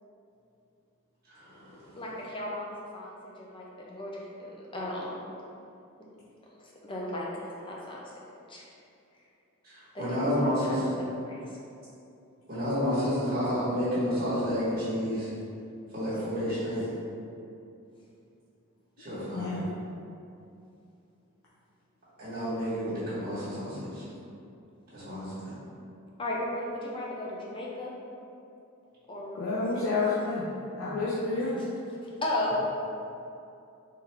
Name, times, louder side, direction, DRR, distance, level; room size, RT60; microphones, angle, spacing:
voice 1, 1.4-1.9 9.6-10.8 12.5-15.3 15.9-16.8 19.0-19.5 22.2-24.0 24.9-25.5 30.8-30.9, equal, 40° right, -12 dB, 1.4 m, -30 dB
voice 2, 2.0-5.1 6.6-7.3 7.7-8.0 8.5-8.7 9.9-10.5 11.0-11.4 26.2-27.9 29.1-29.4 29.7-29.8 32.2-32.6, left 1 dB, 25° left, -4 dB, 0.6 m, -35 dB
voice 3, 19.3-19.6 29.3-30.5 30.7-31.6, left 3 dB, 70° left, -8 dB, 0.5 m, -29 dB
3.8 x 2.8 x 3.4 m, 2.6 s
head